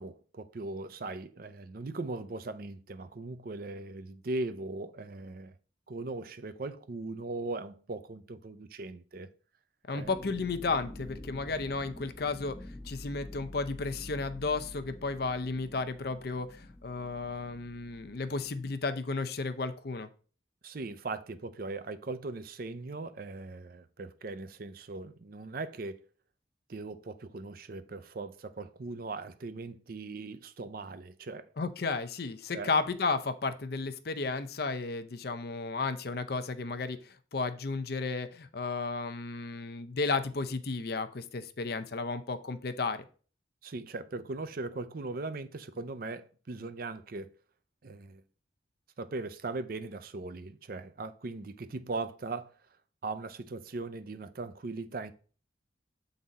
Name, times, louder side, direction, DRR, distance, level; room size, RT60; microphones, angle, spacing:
voice 1, 0.0-5.5 5.9-9.3 9.9-10.1 20.6-26.0 26.7-31.5 32.5-32.7 43.6-47.3 47.8-48.2 49.0-52.5 53.0-55.1, right 3 dB, 50° right, 0.5 m, -39 dB
voice 2, 9.9-20.1 31.6-43.0, left 4 dB, 55° left, 0.6 m, -33 dB
sound 1, 10.0-18.7, left 1 dB, 15° left, 0.6 m, -47 dB
7.5 x 4.0 x 4.1 m
head